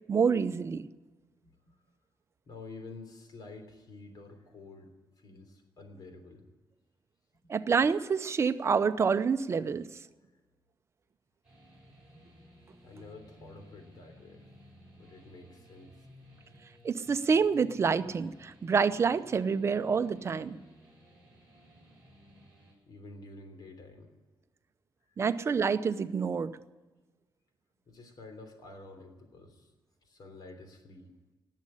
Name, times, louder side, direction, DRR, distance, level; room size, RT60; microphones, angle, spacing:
voice 1, 0.1-0.9 7.5-9.9 16.8-20.6 25.2-26.6, right 5 dB, 35° right, 11 dB, 0.7 m, -27 dB
voice 2, 2.5-4.9 5.2-6.5 12.8-14.4 15.0-16.1 22.9-24.1 25.1-25.2 27.9-29.7 30.0-31.1, left 3 dB, 60° left, 6 dB, 3.3 m, -49 dB
sound 1, 11.4-22.7, equal, 10° right, 6.2 m, -57 dB
19.5 x 7.5 x 9.9 m, 1.2 s
wide cardioid pair, 150°, 8 cm